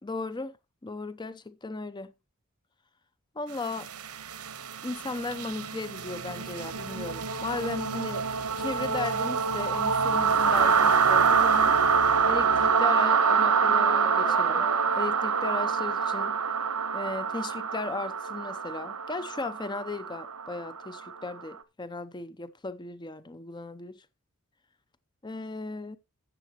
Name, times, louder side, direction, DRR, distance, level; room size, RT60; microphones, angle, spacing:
voice 1, 0.0-0.5 0.8-2.1 3.4-3.9 4.8-8.3 8.5-11.8 12.3-16.4 16.9-24.0 25.2-26.0, left 3 dB, 20° left, 0.6 m, -36 dB
sound 1, 3.6-21.4, right 6 dB, 90° right, 1.1 m, -26 dB
Telephone, 9.7-11.7 12.5-15.6, equal, 5° left, 1.1 m, -44 dB
14.0 x 8.2 x 2.9 m
head